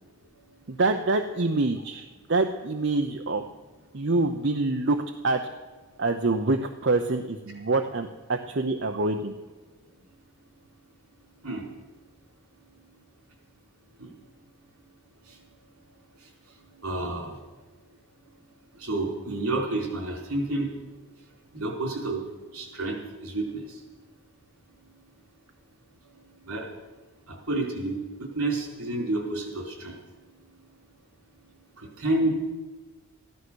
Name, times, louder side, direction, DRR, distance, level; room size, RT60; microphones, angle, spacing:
voice 1, 0.7-3.4 3.9-5.0 5.2-5.4 6.0-9.3, right 3 dB, 55° right, 5 dB, 0.7 m, -26 dB
voice 2, 16.8-17.4 18.8-20.7 21.5-22.2 22.5-23.0 23.2-23.6 26.5-26.7 27.5-29.9 31.8-32.3, right 2 dB, 80° right, 1 dB, 4.3 m, -29 dB
14.5 x 12.5 x 6.3 m, 1.2 s
head